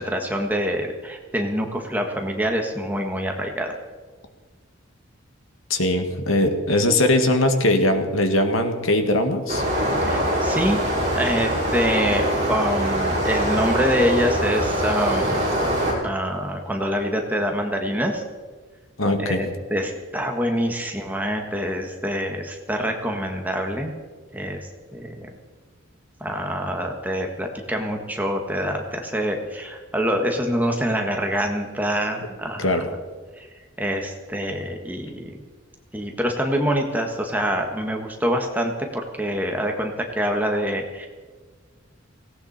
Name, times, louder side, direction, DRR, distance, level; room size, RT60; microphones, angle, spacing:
voice 1, 0.0-3.8 10.0-10.8 11.1-15.5 16.0-18.2 19.2-23.9 24.3-25.3 26.2-32.9 33.4-33.5 33.8-35.4 35.9-41.1, equal, 10° right, 2 dB, 1.6 m, -25 dB
voice 2, 5.7-9.6 19.0-19.4 32.6-32.8, left 1 dB, 85° left, 6 dB, 1.9 m, -20 dB
sound 1, 9.5-15.9, right 1 dB, 35° right, 5.5 m, -23 dB
18.0 x 17.5 x 4.3 m, 1.4 s
head